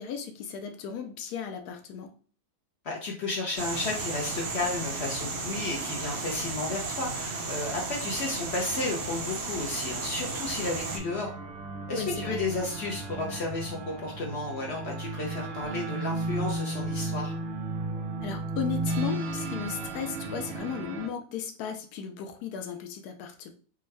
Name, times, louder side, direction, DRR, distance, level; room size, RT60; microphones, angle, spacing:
voice 1, 0.0-2.1 12.0-12.4 18.2-23.5, left 7 dB, 80° left, 7 dB, 1.1 m, -35 dB
voice 2, 2.8-11.3 11.9-17.3, left 2 dB, 60° left, -1 dB, 0.7 m, -33 dB
sound 1, 3.6-11.0, right 3 dB, 55° right, 0.7 m, -34 dB
sound 2, 10.7-21.1, right 2 dB, 90° right, 0.5 m, -34 dB
3.5 x 2.2 x 3.1 m, 0.42 s
omnidirectional pair, 1.7 m